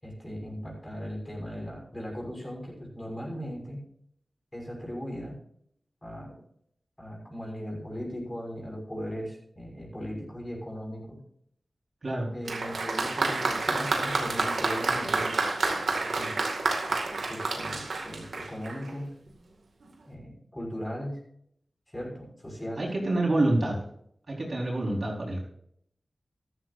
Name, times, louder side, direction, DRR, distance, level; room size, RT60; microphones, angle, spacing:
voice 1, 0.0-3.8 4.5-5.4 6.0-6.4 7.0-11.2 12.3-15.4 16.2-16.4 17.2-19.1 20.0-21.2 21.9-22.9, equal, 20° left, -1 dB, 5.9 m, -38 dB
voice 2, 12.0-12.3 22.8-23.8 24.3-25.4, right 2 dB, 55° right, -2 dB, 4.5 m, -27 dB
Applause, 12.5-18.9 19.8-19.9, right 3 dB, 90° right, 2.1 m, -29 dB
14.0 x 13.0 x 2.6 m, 0.68 s
wide cardioid pair, 80°, 0 cm